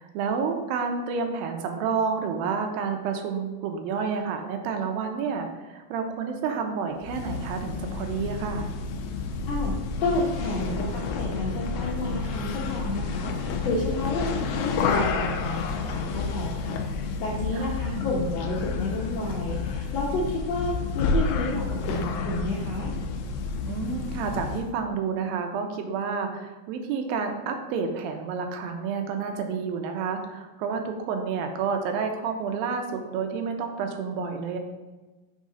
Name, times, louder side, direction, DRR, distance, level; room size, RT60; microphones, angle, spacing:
voice 1, 0.0-8.7 17.5-17.7 23.7-34.6, right 5 dB, 85° right, 5 dB, 2.4 m, -30 dB
sound 1, 7.0-24.7, left 4 dB, 90° left, 2.6 m, -30 dB
voice 2, 10.0-22.9, left 1 dB, 75° left, -3 dB, 1.5 m, -30 dB
6.2 x 3.7 x 5.4 m, 1.2 s
omnidirectional pair, 4.3 m